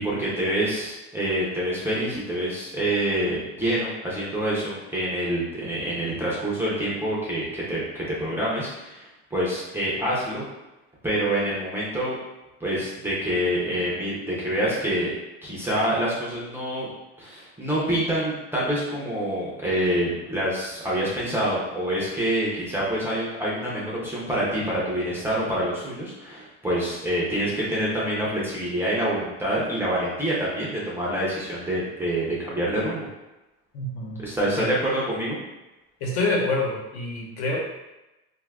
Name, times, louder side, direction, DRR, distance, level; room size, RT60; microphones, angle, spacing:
voice 1, 0.0-10.4 11.0-12.2 12.6-15.1 15.4-16.9 17.2-33.1 34.2-35.4, right 1 dB, 5° right, -7 dB, 0.4 m, -26 dB
voice 2, 33.7-34.2 34.6-34.8 36.0-37.6, left 2 dB, 75° left, -2 dB, 1.0 m, -27 dB
2.5 x 2.4 x 3.3 m, 1.0 s
cardioid pair, 150°, 32 cm